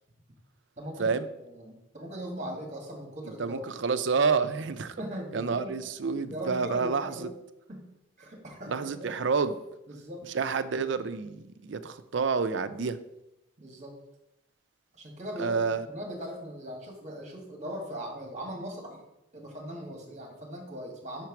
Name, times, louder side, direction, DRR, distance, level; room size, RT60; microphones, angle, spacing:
voice 1, 0.8-1.1 1.5-3.6 5.0-5.8 6.3-7.3 7.7-7.9 8.2-9.1 9.9-10.2 13.6-14.0 14.9-15.6 15.9-19.0 19.3-21.2, equal, 35° right, 2 dB, 1.5 m, -39 dB
voice 2, 3.4-5.0 5.3-7.3 8.7-9.6 10.3-13.0 15.4-15.9, right 5 dB, 65° right, 12 dB, 0.5 m, -29 dB
5.8 x 4.5 x 5.8 m, 0.88 s
head